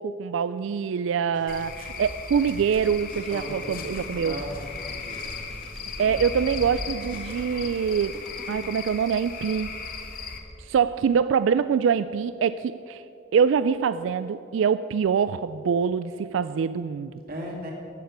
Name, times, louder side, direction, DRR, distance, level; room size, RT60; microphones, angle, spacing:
voice 1, 0.0-4.4 6.0-8.2 8.5-9.8 10.6-13.0 13.3-17.1, right 7 dB, 80° right, 14 dB, 0.3 m, -24 dB
sound 1, 1.3-7.6, equal, 70° left, 2.6 m, -46 dB
Cricket / Frog, 1.5-10.4, left 4 dB, 50° left, 1.4 m, -37 dB
sound 2, 3.0-10.8, left 1 dB, 5° left, 1.8 m, -48 dB
voice 2, 3.3-3.7 4.2-5.4 6.0-6.3 17.3-17.7, equal, 50° right, -2 dB, 2.2 m, -37 dB
14.5 x 6.6 x 9.4 m, 2.8 s
head